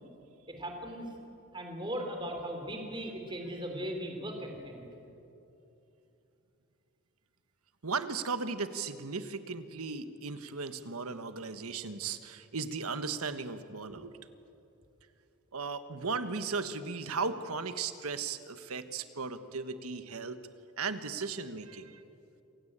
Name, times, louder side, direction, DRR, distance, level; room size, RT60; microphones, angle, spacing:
voice 1, 0.5-1.2 1.5-4.8, equal, 20° right, 3 dB, 3.2 m, -38 dB
voice 2, 7.8-14.3 15.5-20.4 20.8-22.0, right 4 dB, 90° right, 10 dB, 1.3 m, -36 dB
27.5 x 17.0 x 8.8 m, 2.8 s
head